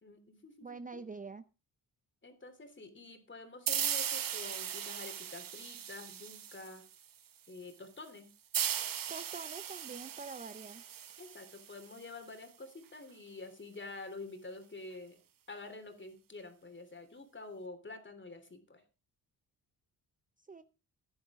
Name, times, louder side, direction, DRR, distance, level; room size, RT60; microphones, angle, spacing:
voice 1, 0.0-1.0 2.2-6.8 7.5-8.3 11.2-15.2 15.5-18.8, left 3 dB, 30° left, 7 dB, 3.3 m, -48 dB
voice 2, 0.6-1.5 9.1-10.8 20.4-20.6, right 4 dB, 20° right, 11 dB, 0.6 m, -45 dB
sound 1, 3.7-7.1 8.5-12.0, right 9 dB, 60° right, 1.0 m, -38 dB
15.5 x 10.5 x 3.7 m, 0.32 s
cardioid pair, 95°, 39 cm